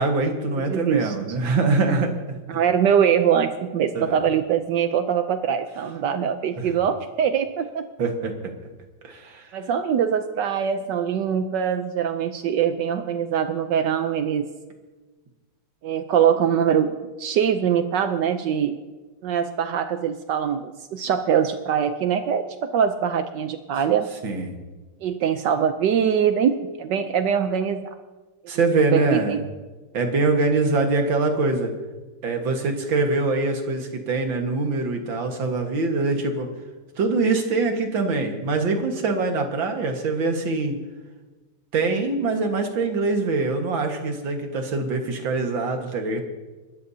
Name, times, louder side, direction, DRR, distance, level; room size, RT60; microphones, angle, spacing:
voice 1, 0.0-2.4 4.0-4.1 6.6-6.7 8.0-8.3 9.0-9.5 24.2-24.5 28.5-29.4 29.9-31.7 32.2-36.5 37.0-40.7 41.7-46.2, right 3 dB, 90° right, 4 dB, 2.4 m, -23 dB
voice 2, 0.7-1.1 1.9-2.1 2.5-7.9 9.5-14.5 15.8-18.8 19.2-22.4 22.7-24.1 25.0-27.9 28.9-29.4, right 8 dB, 75° right, 8 dB, 1.3 m, -23 dB
29.0 x 13.5 x 2.8 m, 1.2 s
omnidirectional pair, 2.0 m